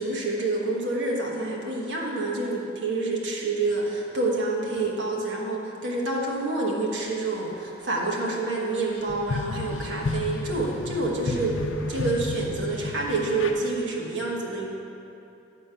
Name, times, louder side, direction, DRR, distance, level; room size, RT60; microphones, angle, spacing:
voice 1, 0.0-11.5 11.9-14.6, right 2 dB, 65° right, -3 dB, 1.3 m, -28 dB
sound 1, 8.8-13.5, left 2 dB, 75° left, 0.6 m, -32 dB
8.9 x 4.4 x 5.6 m, 2.7 s
head